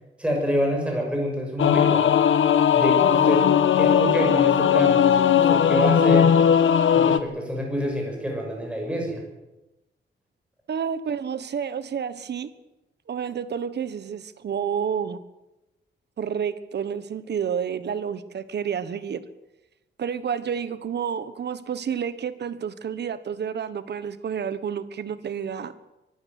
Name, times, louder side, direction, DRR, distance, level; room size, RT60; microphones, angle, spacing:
voice 1, 0.2-2.1 2.7-3.5 3.8-6.3 6.9-9.2, equal, 5° right, 0 dB, 6.7 m, -27 dB
Singing / Musical instrument, 1.6-7.2, left 8 dB, 90° left, 1.3 m, -18 dB
voice 2, 10.7-12.5 13.1-15.2 16.2-19.2 20.0-25.7, right 7 dB, 60° right, 14 dB, 1.3 m, -30 dB
23.5 x 12.5 x 9.5 m, 0.98 s
wide cardioid pair, 180°, 20 cm